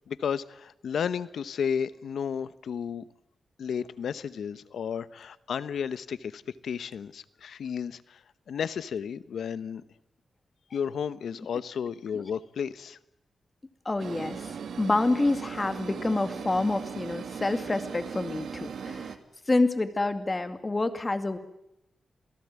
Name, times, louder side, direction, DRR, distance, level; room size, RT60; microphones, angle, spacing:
voice 1, 0.1-3.0 3.6-8.2 8.5-9.8 10.7-13.0, left 7 dB, 85° left, 15 dB, 1.1 m, -33 dB
voice 2, 13.9-14.4 14.8-19.2 19.5-21.4, left 2 dB, 25° left, 10 dB, 2.4 m, -27 dB
sound 1, 14.0-19.2, right 7 dB, 80° right, 2.2 m, -38 dB
28.5 x 17.5 x 9.6 m, 0.85 s
wide cardioid pair, 100°, 0 cm